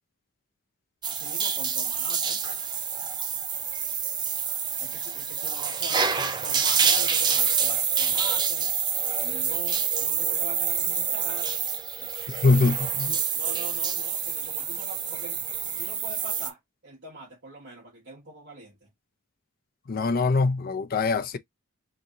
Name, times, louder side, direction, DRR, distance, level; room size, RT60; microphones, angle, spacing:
sound 1, 1.0-16.5, right 7 dB, 20° right, 0.4 m, -27 dB
voice 1, 1.0-2.4 4.8-8.7 9.2-11.6 12.0-12.1 13.3-15.4 15.8-18.9, right 3 dB, 50° right, 1.3 m, -43 dB
voice 2, 12.4-13.2 19.9-21.4, left 3 dB, 40° left, 0.4 m, -23 dB
2.9 x 2.7 x 3.7 m
head